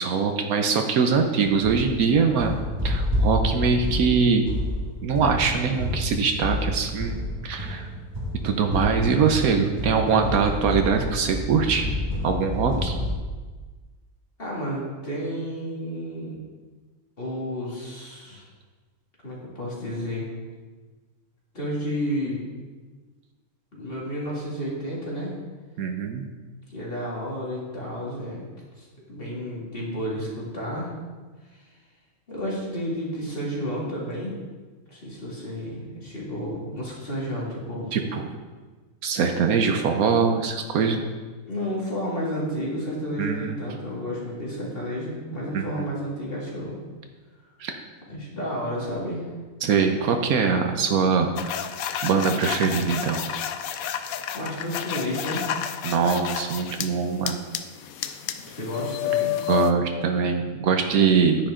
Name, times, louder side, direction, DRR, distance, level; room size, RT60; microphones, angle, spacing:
voice 1, 0.0-4.5 5.0-7.9 8.4-11.9 12.2-13.0 25.8-26.3 37.9-38.3 39.0-41.0 43.2-43.6 45.5-45.9 47.6-47.8 49.6-51.7 52.0-53.2 55.8-57.4 59.5-61.5, right 5 dB, 80° right, 5 dB, 1.2 m, -23 dB
sound 1, 1.4-13.1, left 1 dB, 15° right, 1.6 m, -29 dB
voice 2, 14.4-16.4 17.2-18.5 19.2-20.3 21.5-22.4 23.7-25.4 26.7-28.4 28.8-30.9 31.5-31.6 32.3-34.3 34.9-37.9 41.5-46.8 48.1-49.3 54.3-55.5 58.5-59.4, equal, 40° left, -5 dB, 2.8 m, -31 dB
sound 2, 51.4-56.9 57.3-59.7, left 10 dB, 80° left, 1.1 m, -30 dB
9.9 x 9.3 x 3.8 m, 1.3 s
omnidirectional pair, 1.5 m